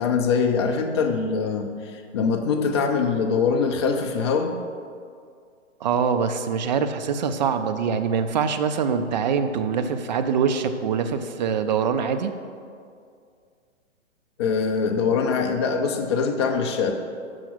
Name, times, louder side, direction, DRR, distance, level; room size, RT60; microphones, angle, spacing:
voice 1, 0.0-4.6 14.4-16.9, left 5 dB, 25° left, 3 dB, 0.4 m, -23 dB
voice 2, 5.8-12.3, right 6 dB, 35° right, 8 dB, 0.4 m, -24 dB
6.2 x 5.7 x 6.1 m, 2.2 s
hypercardioid pair, 135°, 38 cm